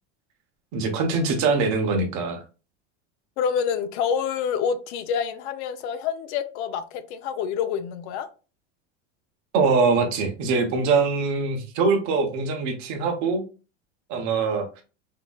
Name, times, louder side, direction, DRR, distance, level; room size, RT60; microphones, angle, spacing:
voice 1, 0.7-2.4 9.5-13.4 14.1-14.8, right 4 dB, 50° right, 4 dB, 0.9 m, -23 dB
voice 2, 3.4-8.3, left 7 dB, 65° left, 10 dB, 0.5 m, -27 dB
3.0 x 2.7 x 2.2 m, 0.33 s
supercardioid pair, 115°, 36 cm